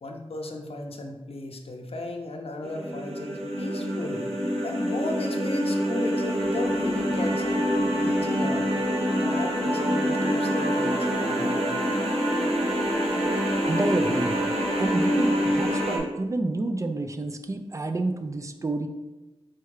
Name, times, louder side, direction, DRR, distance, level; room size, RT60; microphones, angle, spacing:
voice 1, 0.0-4.2 4.6-8.7 9.2-11.7, left 2 dB, 70° left, 3 dB, 0.6 m, -35 dB
sound 1, 2.6-16.0, equal, 85° right, 0.9 m, -26 dB
sound 2, 6.4-13.9, left 1 dB, 50° right, 1.0 m, -35 dB
voice 2, 13.6-14.4 14.8-18.9, right 2 dB, 30° right, 7 dB, 0.3 m, -28 dB
4.3 x 2.3 x 4.7 m, 1.1 s
wide cardioid pair, 80°, 10 cm